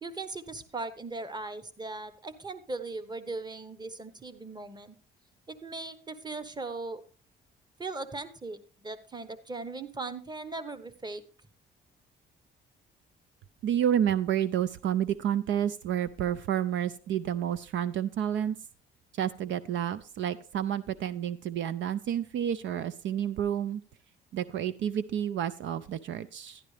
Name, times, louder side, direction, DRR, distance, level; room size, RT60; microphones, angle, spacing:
voice 1, 0.0-4.9 5.5-7.0 7.8-11.2, right 3 dB, 20° right, 12 dB, 1.1 m, -39 dB
voice 2, 13.6-18.6 19.2-23.8 24.3-26.6, right 10 dB, 70° right, 14 dB, 0.5 m, -30 dB
11.5 x 11.0 x 3.3 m, 0.38 s
cardioid pair, 90°, 20 cm